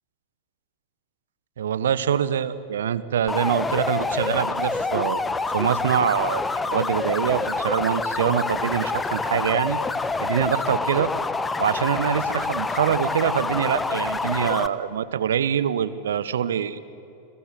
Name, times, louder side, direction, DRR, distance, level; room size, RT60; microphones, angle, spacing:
voice 1, 1.6-9.8 10.2-11.1 11.6-16.9, right 9 dB, 65° right, 17 dB, 1.1 m, -24 dB
sound 1, 3.3-14.7, left 3 dB, 10° left, 1.1 m, -27 dB
30.0 x 22.5 x 8.4 m, 2.8 s
figure-of-eight pair, 90°, 0 cm